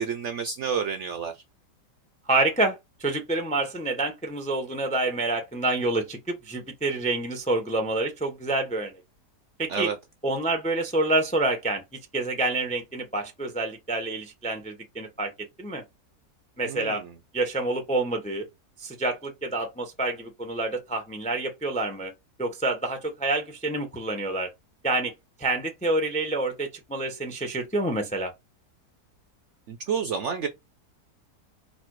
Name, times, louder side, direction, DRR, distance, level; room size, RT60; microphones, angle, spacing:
voice 1, 0.0-1.3 9.7-10.0 16.6-17.1 29.7-30.5, right 6 dB, 65° right, 0.7 m, -29 dB
voice 2, 2.3-8.9 9.6-9.9 10.2-11.8 12.1-15.3 15.6-15.8 16.6-17.0 17.3-18.5 18.8-22.1 22.4-24.5 24.8-25.1 25.4-28.3, right 2 dB, 10° left, 0.4 m, -27 dB
4.1 x 2.6 x 4.5 m
omnidirectional pair, 1.7 m